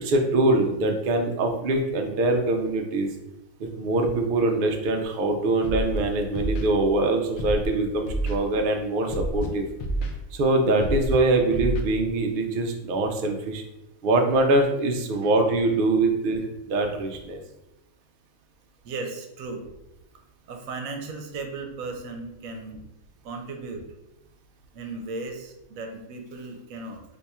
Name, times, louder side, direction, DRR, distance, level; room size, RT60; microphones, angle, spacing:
voice 1, 0.0-3.1 3.6-9.6 10.3-13.6 14.0-17.4, right 2 dB, 65° right, 3 dB, 0.5 m, -23 dB
Scratching (performance technique), 5.6-6.0 6.3-6.7 7.4-7.7 8.1-8.4 9.1-9.5 9.8-10.1 10.8-11.1 11.5-11.8, right 1 dB, 65° left, 0.5 m, -28 dB
voice 2, 18.8-19.7 20.5-22.8 23.2-23.8 24.7-27.0, right 3 dB, 85° right, 3 dB, 1.0 m, -36 dB
2.7 x 2.3 x 4.1 m, 0.90 s
omnidirectional pair, 1.4 m